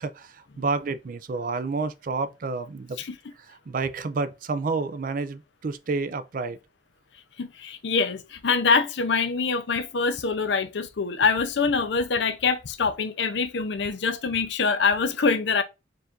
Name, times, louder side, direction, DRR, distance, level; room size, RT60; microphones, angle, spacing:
voice 1, 0.0-3.0 3.4-6.6, right 4 dB, 45° right, 0.4 m, -30 dB
voice 2, 7.4-15.6, left 4 dB, 65° left, 0.5 m, -24 dB
4.7 x 2.5 x 3.7 m
head